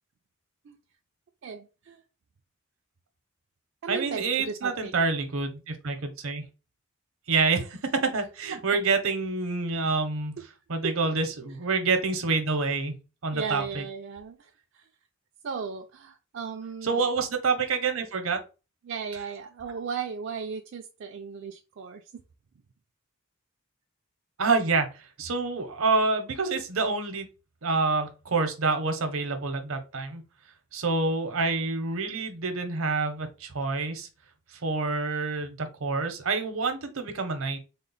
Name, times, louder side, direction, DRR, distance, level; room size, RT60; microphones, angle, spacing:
voice 1, 1.4-2.0 3.8-4.9 8.5-8.6 10.8-11.0 13.3-14.9 15.4-17.1 18.8-22.2, right 5 dB, 60° right, 3 dB, 0.4 m, -36 dB
voice 2, 3.9-6.4 7.3-10.4 10.7-12.9 13.2-13.8 16.8-18.4 24.4-27.3 27.6-30.2 30.7-34.1 34.6-37.6, right 4 dB, 80° right, 6 dB, 0.8 m, -27 dB
3.7 x 2.1 x 4.0 m, 0.31 s
head